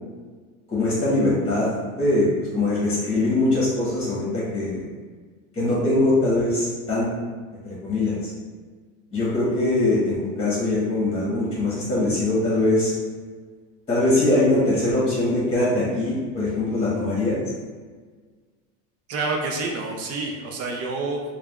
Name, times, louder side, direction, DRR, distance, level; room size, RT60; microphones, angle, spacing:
voice 1, 0.7-1.7 1.9-2.3 2.5-4.8 5.5-7.1 7.6-8.2 9.1-12.9 13.9-17.4, left 2 dB, 15° left, -7 dB, 1.1 m, -22 dB
voice 2, 19.1-21.2, right 3 dB, 40° right, 1 dB, 0.5 m, -28 dB
3.2 x 2.3 x 2.3 m, 1.5 s
supercardioid pair, 120°, 37 cm